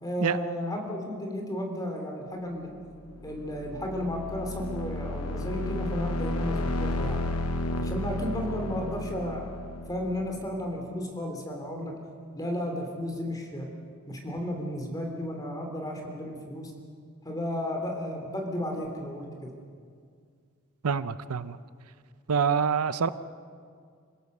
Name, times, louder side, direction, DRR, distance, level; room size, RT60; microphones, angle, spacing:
voice 1, 0.0-2.7 3.2-7.3 7.8-12.0 12.3-13.7 14.1-16.7 17.2-19.5, left 1 dB, 15° left, 2 dB, 3.0 m, -33 dB
sound 1, 3.1-10.8, left 1 dB, 90° left, 1.0 m, -33 dB
voice 2, 20.8-21.6 22.3-23.1, right 6 dB, 85° right, 14 dB, 0.6 m, -26 dB
26.5 x 16.5 x 6.7 m, 2.2 s
head